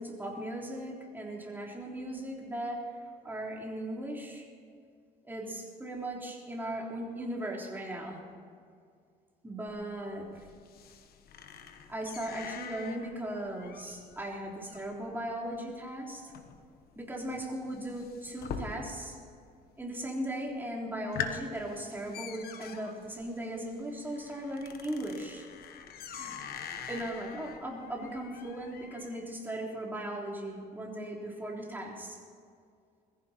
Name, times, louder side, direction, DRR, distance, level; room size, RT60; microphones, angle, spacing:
voice 1, 0.0-2.8 3.2-4.4 5.3-8.2 9.4-10.3 11.9-16.3 17.0-19.2 19.8-25.5 26.1-26.3 26.9-32.2, right 1 dB, 10° right, -2 dB, 3.5 m, -38 dB
sound 1, 9.7-19.2 19.5-20.1 20.5-20.6 20.9-29.2, left 7 dB, 65° left, 1.4 m, -44 dB
21.0 x 15.0 x 4.4 m, 2.3 s
cardioid pair, 110°, 17 cm